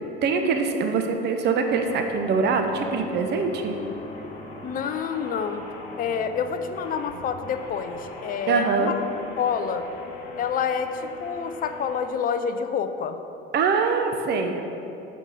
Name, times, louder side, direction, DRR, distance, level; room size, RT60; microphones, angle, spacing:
voice 1, 0.2-3.7 8.5-8.9 13.5-14.6, right 5 dB, 35° right, 5 dB, 0.7 m, -23 dB
sound 1, 1.6-12.0, left 2 dB, 80° left, 1.2 m, -40 dB
voice 2, 4.6-5.6 6.0-9.0 9.4-9.9 10.4-13.2, left 7 dB, 30° left, 9 dB, 0.5 m, -28 dB
5.9 x 5.5 x 5.3 m, 2.9 s
hypercardioid pair, 70°, 30 cm